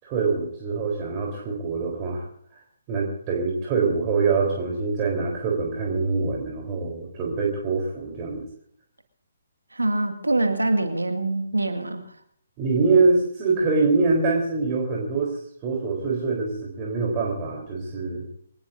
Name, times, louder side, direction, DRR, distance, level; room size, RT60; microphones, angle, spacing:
voice 1, 0.0-2.3 2.9-8.4 12.6-15.4 15.6-18.3, right 4 dB, 30° right, -2 dB, 3.8 m, -24 dB
voice 2, 9.7-12.0, right 2 dB, 85° right, 6 dB, 2.1 m, -24 dB
24.0 x 19.0 x 2.7 m, 0.63 s
figure-of-eight pair, 135°, 0 cm